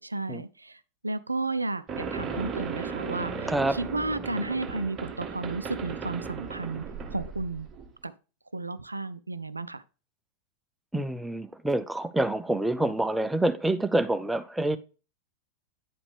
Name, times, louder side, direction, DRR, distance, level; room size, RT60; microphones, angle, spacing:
voice 1, 0.0-6.8 7.1-7.7 8.0-8.1 8.5-9.8, right 2 dB, 80° right, 0.3 m, -33 dB
sound 1, 1.9-7.9, right 5 dB, 25° right, 1.1 m, -36 dB
voice 2, 3.5-3.8 10.9-14.8, right 1 dB, 5° right, 0.5 m, -27 dB
9.3 x 5.0 x 3.3 m
figure-of-eight pair, 90°, 0 cm